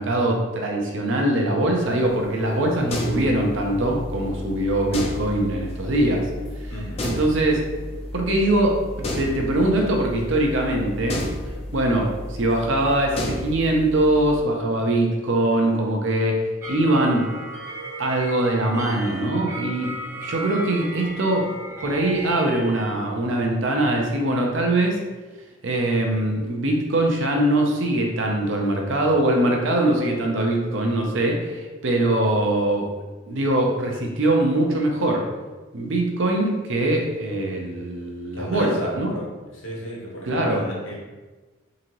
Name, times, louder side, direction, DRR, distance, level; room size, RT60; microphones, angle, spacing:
voice 1, 0.0-6.3 7.0-7.6 8.1-11.3 11.7-16.4 16.7-17.3 18.0-19.9 20.2-21.5 21.8-25.0 25.6-32.9 33.3-35.2 35.7-39.1 40.3-40.6, right 1 dB, 65° right, 1 dB, 0.6 m, -22 dB
sound 1, 1.8-14.4, left 1 dB, 30° left, 0.5 m, -33 dB
voice 2, 6.7-7.2 38.3-41.0, equal, 65° left, -4 dB, 1.2 m, -34 dB
sound 2, 16.6-22.9, right 1 dB, 15° right, 0.7 m, -36 dB
3.8 x 2.8 x 3.0 m, 1.2 s
head